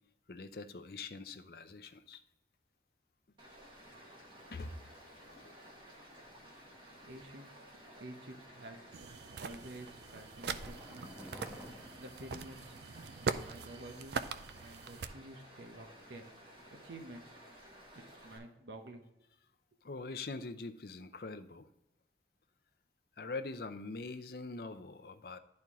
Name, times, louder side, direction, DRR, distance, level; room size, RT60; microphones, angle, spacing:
voice 1, 0.3-2.2 4.5-4.8 5.2-5.5 19.8-21.7 23.2-25.4, left 3 dB, 55° left, 8 dB, 0.6 m, -43 dB
Stream, 3.4-18.4, equal, 25° right, 1.5 m, -55 dB
voice 2, 7.1-7.5 8.0-9.0 9.4-11.1 12.0-12.7 13.2-14.2 14.6-17.4 17.9-19.1, right 1 dB, 85° right, 5 dB, 0.9 m, -50 dB
sound 1, 8.9-15.1, right 5 dB, 70° right, 0.4 m, -42 dB
sound 2, 9.5-13.2 13.5-13.6, equal, 10° right, 1.3 m, -53 dB
11.0 x 4.4 x 3.6 m, 0.90 s
head